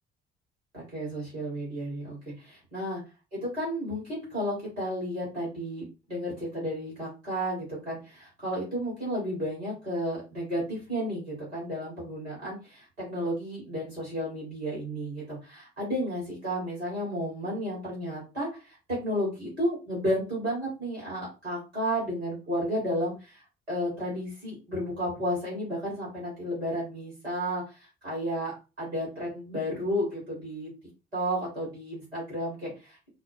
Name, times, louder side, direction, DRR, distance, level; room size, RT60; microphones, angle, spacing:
voice 1, 0.7-3.0 3.3-30.7 31.1-33.0, equal, 85° right, -5 dB, 2.0 m, -32 dB
4.1 x 2.1 x 3.0 m, 0.30 s
figure-of-eight pair, 50°, 31 cm